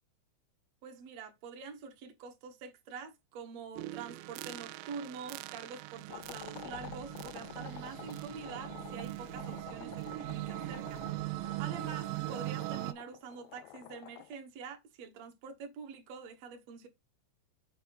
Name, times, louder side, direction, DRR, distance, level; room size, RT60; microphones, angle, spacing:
voice 1, 0.8-16.9, right 5 dB, 70° right, 1.6 m, -46 dB
sound 1, 3.8-12.9, right 19 dB, 85° right, 2.5 m, -40 dB
Breathing, 6.0-12.6, left 7 dB, 65° left, 3.0 m, -55 dB
sound 2, 6.1-14.4, left 18 dB, 90° left, 3.1 m, -51 dB
7.4 x 3.4 x 5.7 m
omnidirectional pair, 5.6 m